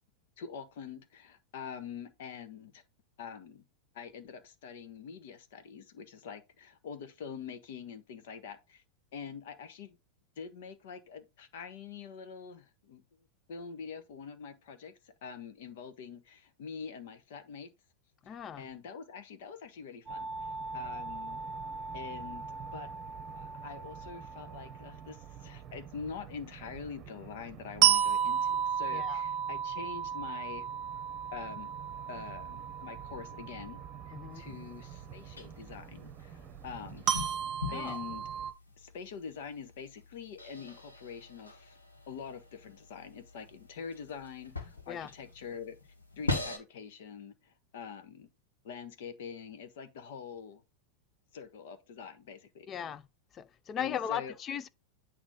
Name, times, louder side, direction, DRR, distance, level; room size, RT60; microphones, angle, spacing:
voice 1, 0.4-2.8 3.2-3.6 3.9-8.8 9.1-10.0 10.4-13.0 13.5-17.7 18.2-21.4 21.9-22.9 23.3-30.7 31.3-31.7 32.1-33.8 34.0-37.1 37.7-38.2 38.8-41.8 42.1-45.8 46.2-48.3 48.6-50.6 51.3-52.7 53.8-54.3, left 6 dB, 55° left, 1.3 m, -45 dB
voice 2, 18.3-18.7 28.9-29.2 34.1-34.5 37.7-38.0 44.9-45.1 52.7-53.0 53.3-54.7, left 9 dB, 25° left, 0.5 m, -37 dB
sound 1, 20.1-38.5, right 9 dB, 30° right, 0.9 m, -35 dB
sound 2, 34.3-46.6, left 3 dB, 75° left, 1.7 m, -43 dB
8.7 x 3.1 x 5.4 m
figure-of-eight pair, 90°, 0 cm